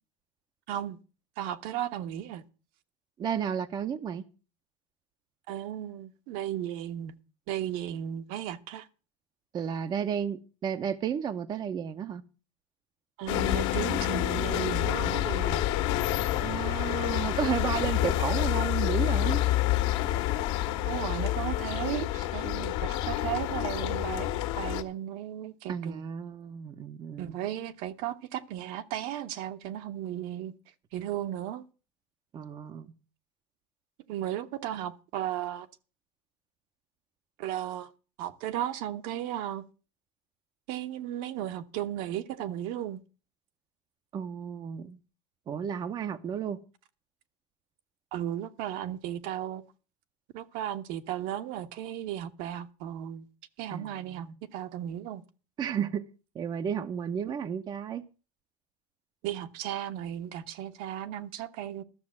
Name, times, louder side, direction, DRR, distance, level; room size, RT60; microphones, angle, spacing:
voice 1, 0.7-1.0 1.4-2.4 5.5-7.1 7.5-8.9 13.2-15.7 20.8-26.0 27.2-30.5 30.9-31.6 34.1-35.7 37.4-37.9 38.2-39.6 40.7-43.0 48.1-49.6 50.3-53.3 53.6-54.3 54.5-55.2 59.2-61.8, right 11 dB, 60° right, 1.1 m, -35 dB
voice 2, 3.2-4.2 9.5-12.2 16.4-19.4 25.7-27.3 32.3-32.9 44.1-45.0 45.5-46.6 53.7-54.4 55.6-56.0 56.3-58.0, right 8 dB, 25° right, 0.7 m, -33 dB
sound 1, 13.3-24.8, left 13 dB, 65° left, 1.7 m, -28 dB
13.0 x 6.8 x 7.3 m
cardioid pair, 150°, 16 cm